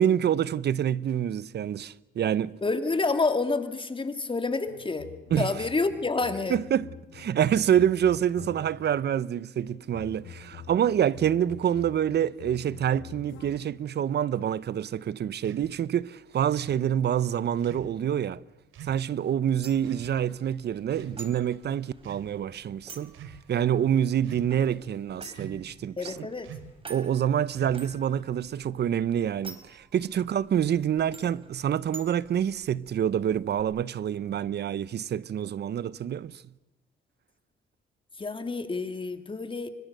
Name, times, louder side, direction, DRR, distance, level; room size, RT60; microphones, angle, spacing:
voice 1, 0.0-2.5 5.3-5.5 6.5-18.4 18.8-23.1 23.5-26.3 26.9-36.4, right 9 dB, 55° right, 0.9 m, -27 dB
voice 2, 2.6-5.1 5.4-6.6 26.0-26.5 38.2-39.7, left 3 dB, 25° left, 2.4 m, -28 dB
sound 1, 4.7-8.9 9.6-13.8, left 8 dB, 80° left, 2.8 m, -47 dB
sound 2, 15.4-15.7 16.5-16.8 17.6-18.0 18.7-19.0 19.8-20.1 20.9-21.5 22.0-22.3 23.0-23.4 24.2-24.7 25.3-25.7 26.4-26.8 27.5-28.0, right 8 dB, 85° right, 3.2 m, -44 dB
sound 3, 19.6-33.6, right 3 dB, 25° right, 5.5 m, -50 dB
30.0 x 24.5 x 6.7 m
cardioid pair, 90°, 20 cm